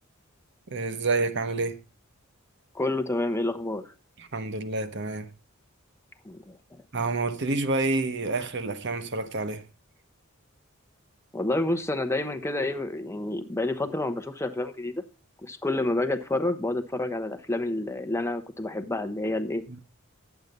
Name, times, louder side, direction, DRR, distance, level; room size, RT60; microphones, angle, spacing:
voice 1, 0.7-1.8 4.2-5.3 6.9-9.7 19.7-19.8, right 3 dB, 55° right, 1.1 m, -28 dB
voice 2, 2.7-3.8 6.2-6.6 11.3-15.0 15.4-19.6, left 2 dB, 15° left, 0.8 m, -29 dB
10.5 x 8.1 x 5.4 m
head